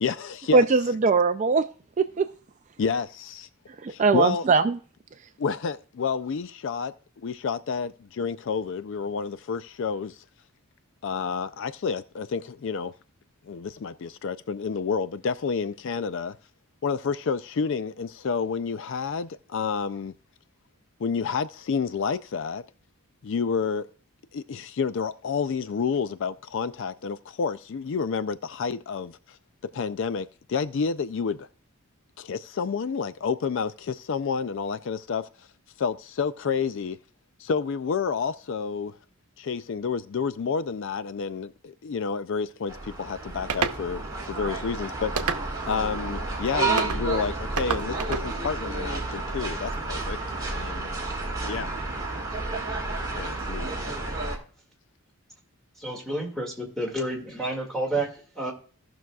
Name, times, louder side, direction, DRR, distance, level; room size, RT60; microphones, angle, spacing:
voice 1, 0.0-0.6 2.8-3.5 3.9-4.5 5.4-6.9 7.2-10.2 11.0-12.9 13.4-16.4 16.8-20.1 21.0-22.6 23.2-23.9 24.3-29.4 29.7-31.5 32.2-35.3 35.8-37.0 37.4-39.0 39.4-44.0 44.3-45.4 45.7-50.2 50.5-50.9 51.5-51.7 53.1-53.7, left 5 dB, 55° left, 0.4 m, -29 dB
voice 2, 0.5-1.7 2.0-2.3 3.8-4.8, right 4 dB, 35° right, 0.3 m, -21 dB
sound 1, 42.7-54.4, right 3 dB, 15° right, 1.7 m, -31 dB
sound 2, 43.5-43.8 45.2-45.7 46.8-47.0 47.6-48.3, right 5 dB, 90° right, 0.8 m, -28 dB
voice 3, 55.8-58.5, right 1 dB, ahead, 2.0 m, -30 dB
17.0 x 6.1 x 2.3 m
head